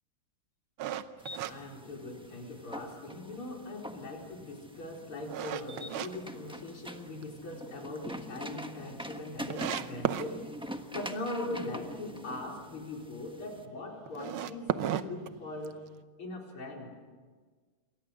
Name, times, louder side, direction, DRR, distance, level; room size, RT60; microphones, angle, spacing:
sound 1, 0.8-2.5 2.9-3.0 3.6-6.1 6.5-7.2 7.6-7.7 8.0-8.1 8.3-8.4 9.0-9.1 9.5-10.3 14.0-15.9, right 11 dB, 75° right, 1.7 m, -35 dB
sound 2, 1.2-13.6, equal, 5° right, 0.8 m, -45 dB
voice 1, 1.5-10.4 10.9-15.8 16.2-17.0, left 2 dB, 85° left, 0 dB, 5.4 m, -40 dB
28.5 x 23.0 x 6.5 m, 1.5 s
omnidirectional pair, 2.3 m